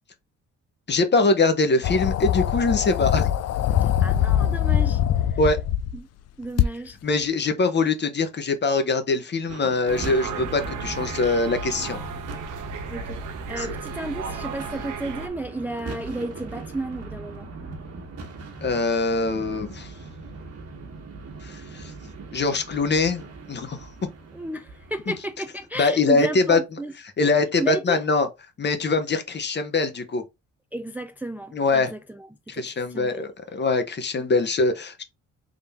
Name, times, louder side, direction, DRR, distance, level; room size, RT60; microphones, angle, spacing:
voice 1, 0.9-3.3 5.4-5.6 7.0-12.0 13.6-13.7 18.6-19.9 21.4-21.9 22.3-24.1 25.8-26.6 27.2-28.3 28.6-30.2 31.5-31.9 32.5-35.0, left 3 dB, 35° left, 0.9 m, -23 dB
sound 1, 1.8-6.0 6.6-6.7, left 11 dB, 55° left, 0.4 m, -22 dB
voice 2, 3.8-5.0 5.3-5.4 5.9-6.1 6.4-7.0 12.9-17.5 24.3-26.9 27.6-28.0 30.7-32.3 32.5-33.3, right 1 dB, 5° right, 0.4 m, -33 dB
sound 2, 9.4-25.8, right 3 dB, 55° right, 1.5 m, -39 dB
sound 3, 9.9-15.3, right 5 dB, 80° right, 0.8 m, -34 dB
3.7 x 2.7 x 3.5 m
cardioid pair, 90°, 30 cm